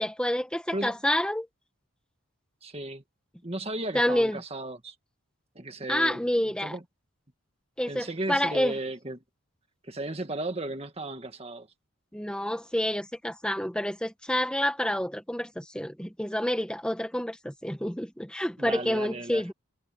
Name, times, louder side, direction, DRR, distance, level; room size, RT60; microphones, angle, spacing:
voice 1, 0.0-1.5 3.9-4.4 5.9-6.8 7.8-8.7 12.1-19.5, left 1 dB, 5° left, 1.8 m, -28 dB
voice 2, 2.6-3.0 3.4-4.9 5.5-6.2 6.6-6.8 7.9-9.2 9.8-11.7 18.6-19.5, right 2 dB, 30° right, 1.8 m, -35 dB
head